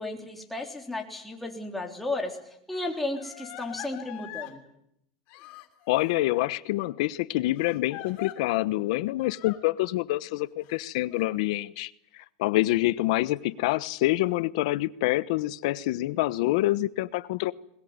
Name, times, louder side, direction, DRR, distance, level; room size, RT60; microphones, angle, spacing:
voice 1, 0.0-4.6, left 2 dB, 5° left, 1 dB, 3.5 m, -34 dB
Crying sobbing, 1.8-1.9 2.7-4.6 5.3-6.1 7.6-8.4 9.2-9.6 10.6-11.2, left 15 dB, 45° left, 3.2 m, -43 dB
voice 2, 5.9-11.9 12.4-17.5, left 17 dB, 60° left, 16 dB, 1.0 m, -26 dB
21.5 x 20.5 x 9.6 m, 0.77 s
supercardioid pair, 150°, 4 cm